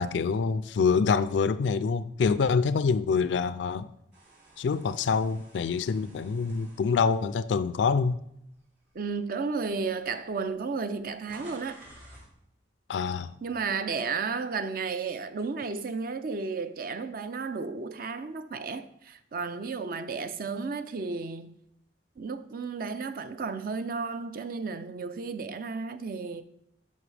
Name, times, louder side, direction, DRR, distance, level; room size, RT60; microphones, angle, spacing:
voice 1, 0.0-3.9 4.6-8.2 12.9-13.3, left 5 dB, 80° left, 0.3 m, -26 dB
sound 1, 4.1-8.4 8.9-9.1 10.0-10.1 10.3-12.3, right 1 dB, 80° right, 3.1 m, -53 dB
voice 2, 8.9-11.8 13.4-21.5 22.2-26.4, right 4 dB, 55° right, 0.5 m, -33 dB
11.0 x 5.3 x 3.3 m
head